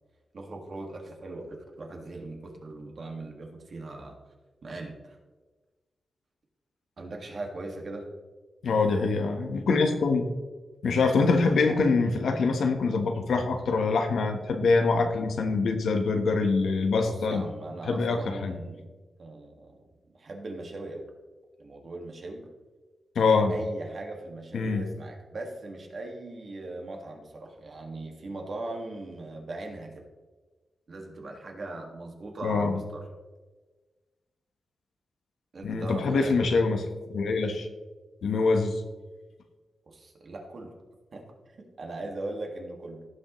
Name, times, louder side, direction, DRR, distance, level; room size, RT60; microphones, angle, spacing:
voice 1, 0.3-4.2 4.6-5.2 7.0-8.1 17.0-18.9 19.2-19.8 20.1-21.0 21.6-22.5 23.5-30.0 30.9-33.1 35.5-36.6 39.9-40.7 41.1-43.0, right 2 dB, 50° right, 1 dB, 1.9 m, -39 dB
voice 2, 8.6-10.3 10.8-17.4 17.8-18.6 23.1-23.5 24.5-24.8 32.4-32.8 35.6-36.8 37.1-37.7 38.2-38.8, left 4 dB, 80° left, 5 dB, 1.1 m, -24 dB
16.5 x 6.4 x 3.1 m, 1.3 s
wide cardioid pair, 145°, 0 cm